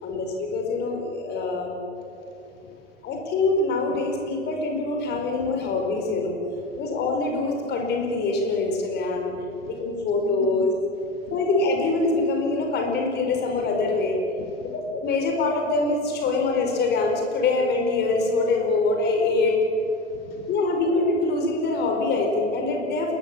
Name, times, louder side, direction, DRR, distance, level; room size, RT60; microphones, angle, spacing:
voice 1, 0.0-1.8 3.0-6.4 6.8-9.3 9.7-10.7 11.3-14.2 14.6-19.6 20.5-23.1, left 3 dB, 25° left, 2 dB, 4.8 m, -24 dB
voice 2, 2.2-2.8 6.7-6.8 9.5-9.7 10.2-10.7 11.1-11.4 14.4-14.7 20.0-20.5, left 7 dB, 50° left, 2 dB, 2.7 m, -42 dB
29.0 x 21.0 x 7.3 m, 2.9 s
figure-of-eight pair, 100°, 36 cm